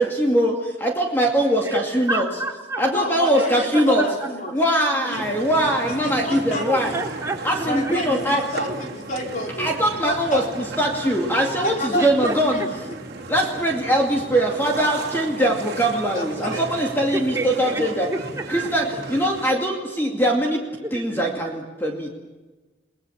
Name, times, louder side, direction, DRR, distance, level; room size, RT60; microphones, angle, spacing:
voice 1, 0.0-2.2 2.8-4.1 4.5-7.0 7.4-8.4 9.6-12.6 13.3-18.1 18.5-20.6 20.9-22.1, right 1 dB, 10° left, 0 dB, 2.4 m, -22 dB
voice 2, 1.6-2.8 3.3-3.5 3.7-4.3 6.6-8.0 11.9-13.0 17.1-18.4 20.8-21.2, right 2 dB, 15° right, 0 dB, 3.0 m, -30 dB
voice 3, 2.9-4.5 4.9-5.2 5.6-7.0 7.6-9.7 10.0-10.5 11.6-12.7 16.1-16.6, equal, 45° left, 0 dB, 4.2 m, -29 dB
sound 1, 5.1-19.5, right 3 dB, 60° right, 2.7 m, -35 dB
30.0 x 20.5 x 7.3 m, 1.2 s
head